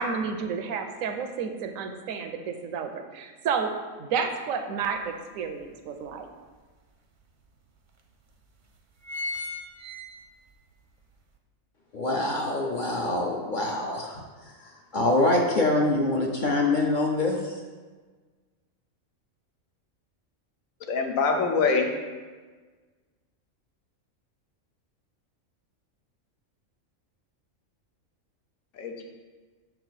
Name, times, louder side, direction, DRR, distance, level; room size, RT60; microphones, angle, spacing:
voice 1, 0.0-3.7 4.0-6.3, right 6 dB, 85° right, 6 dB, 1.0 m, -31 dB
sound 1, 4.8-4.9 5.4-6.6 7.2-7.3 7.5-7.6 8.3-8.5 8.8-10.6 11.0-11.1, left 2 dB, 50° right, 0.6 m, -36 dB
voice 2, 11.9-17.6, left 2 dB, 50° left, 0 dB, 0.6 m, -25 dB
voice 3, 20.9-21.9 28.8-29.0, left 4 dB, 80° left, 3 dB, 1.2 m, -24 dB
6.5 x 4.6 x 4.0 m, 1.4 s
omnidirectional pair, 1.4 m